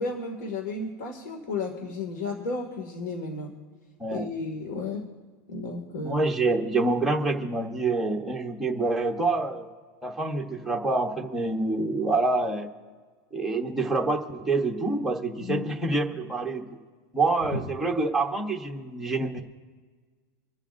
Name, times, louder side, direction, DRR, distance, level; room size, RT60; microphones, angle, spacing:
voice 1, 0.0-3.5 4.1-5.0 5.5-6.2 15.4-15.6 17.5-17.6, left 3 dB, 60° left, 2 dB, 2.2 m, -33 dB
voice 2, 4.0-4.3 6.0-9.7 10.0-12.7 13.3-16.6 17.1-19.4, right 3 dB, ahead, 1 dB, 0.9 m, -26 dB
27.5 x 11.0 x 2.6 m, 1.5 s
supercardioid pair, 170°, 11 cm